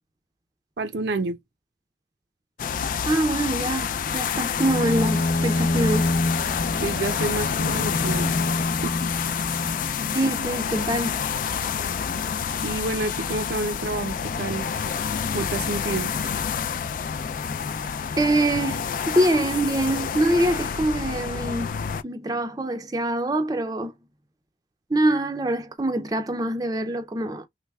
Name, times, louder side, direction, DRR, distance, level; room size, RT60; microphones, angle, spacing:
voice 1, 0.8-1.4 6.8-8.3 8.8-8.9 12.6-14.7 15.3-16.1, right 2 dB, 75° right, 0.6 m, -29 dB
sound 1, 2.6-22.0, left 7 dB, 50° left, 0.3 m, -28 dB
voice 2, 3.0-6.1 10.1-11.2 18.2-21.7 22.0-23.9 24.9-27.5, right 1 dB, 20° right, 0.5 m, -24 dB
Bowed string instrument, 4.5-10.4, left 1 dB, 65° left, 1.0 m, -27 dB
3.3 x 3.2 x 2.3 m
head